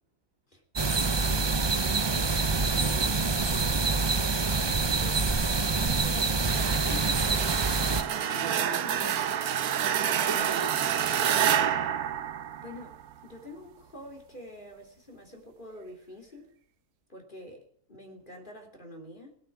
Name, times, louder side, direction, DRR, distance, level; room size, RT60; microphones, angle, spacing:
sound 1, 0.7-8.0, right 4 dB, 40° right, 0.3 m, -26 dB
voice 1, 0.9-2.4 2.7-7.2 8.1-8.5 8.8-9.1 10.2-10.7 12.6-16.5 17.1-19.4, left 1 dB, 30° left, 2 dB, 3.3 m, -47 dB
voice 2, 2.7-3.2 6.7-6.8 7.8-9.3 10.1-11.9, right 4 dB, 55° right, 1 dB, 2.8 m, -41 dB
sound 2, 6.4-13.1, right 9 dB, 75° right, 1.3 m, -28 dB
18.0 x 8.8 x 8.4 m, 0.64 s
omnidirectional pair, 1.6 m